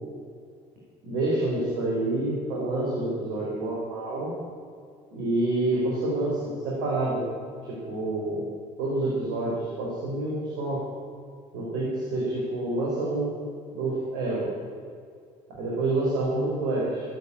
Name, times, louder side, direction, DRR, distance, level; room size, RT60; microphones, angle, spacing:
voice 1, 1.0-4.3 5.1-7.2 7.7-8.5 8.8-10.8 11.5-13.3 13.7-14.5 15.6-17.0, right 2 dB, 75° right, -5 dB, 4.6 m, -28 dB
16.5 x 8.2 x 8.5 m, 2.2 s
hypercardioid pair, 70°, 17 cm